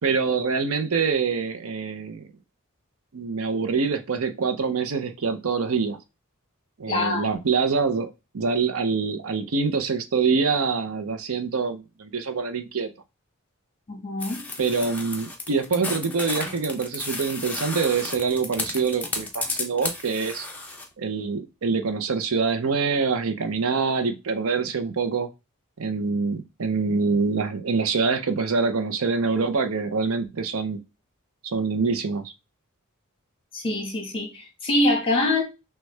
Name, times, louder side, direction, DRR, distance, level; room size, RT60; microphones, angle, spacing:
voice 1, 0.0-2.3 3.1-6.0 6.8-12.9 14.6-20.5 21.0-25.3 25.8-30.8 31.4-32.3, right 5 dB, 75° right, 0.6 m, -25 dB
voice 2, 6.9-7.3 13.9-14.4 33.5-35.4, left 2 dB, 25° left, 1.5 m, -24 dB
sound 1, 14.2-20.9, left 2 dB, 5° left, 0.7 m, -33 dB
6.2 x 2.3 x 3.2 m
head